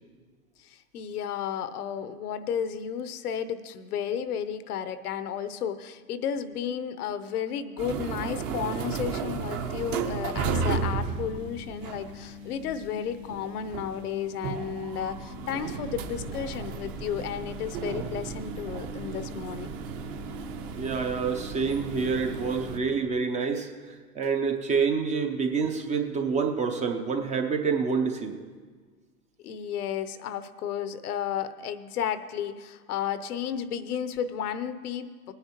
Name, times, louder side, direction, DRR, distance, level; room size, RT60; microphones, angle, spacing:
voice 1, 0.6-19.8 29.4-35.3, left 8 dB, 70° left, 12 dB, 0.9 m, -33 dB
sound 1, 7.8-22.8, right 5 dB, 35° right, 0.9 m, -34 dB
voice 2, 20.7-28.4, right 5 dB, 15° right, 4 dB, 0.6 m, -27 dB
19.0 x 9.7 x 3.0 m, 1.5 s
hypercardioid pair, 110°, 47 cm